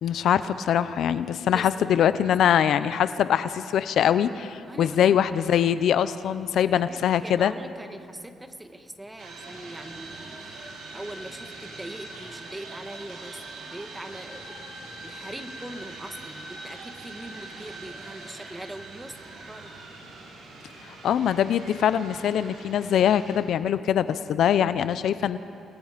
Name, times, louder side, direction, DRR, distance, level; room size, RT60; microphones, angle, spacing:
voice 1, 0.0-7.5 20.8-25.4, left 9 dB, 70° left, 13 dB, 0.6 m, -23 dB
voice 2, 4.7-5.2 6.7-10.4 10.9-19.2 19.5-19.7, right 1 dB, 10° right, 7 dB, 1.6 m, -41 dB
sound 1, 9.2-23.4, right 2 dB, 85° right, 5.2 m, -42 dB
28.5 x 19.5 x 5.1 m, 2.5 s
cardioid pair, 90°, 0 cm